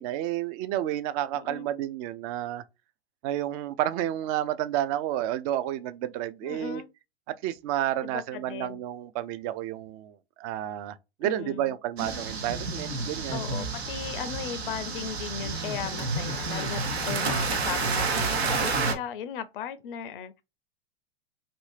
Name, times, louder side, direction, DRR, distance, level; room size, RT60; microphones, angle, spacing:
voice 1, 0.0-2.6 3.2-6.8 7.3-13.5, right 12 dB, 35° right, 0.4 m, -31 dB
voice 2, 1.3-1.7 6.4-6.9 8.0-8.8 11.2-11.7 13.3-20.4, left 8 dB, 55° left, 0.4 m, -37 dB
sound 1, 12.0-18.9, right 4 dB, 75° right, 0.9 m, -30 dB
2.8 x 2.6 x 3.2 m
hypercardioid pair, 100°, 32 cm